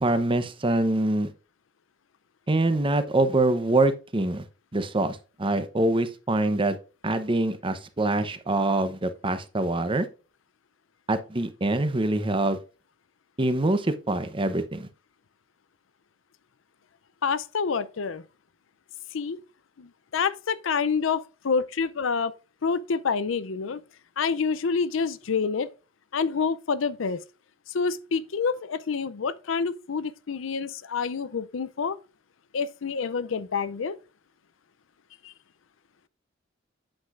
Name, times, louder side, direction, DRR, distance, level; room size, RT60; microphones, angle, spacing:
voice 1, 0.0-1.3 2.5-4.4 4.7-6.8 7.0-10.1 11.1-12.6 13.4-14.9, right 2 dB, 25° right, 0.8 m, -24 dB
voice 2, 17.2-18.2 19.1-19.4 19.8-22.3 22.6-23.8 24.2-25.7 26.1-27.2 27.7-32.0 32.5-34.0 35.2-35.3, left 5 dB, 80° left, 0.5 m, -27 dB
8.8 x 7.8 x 2.5 m
head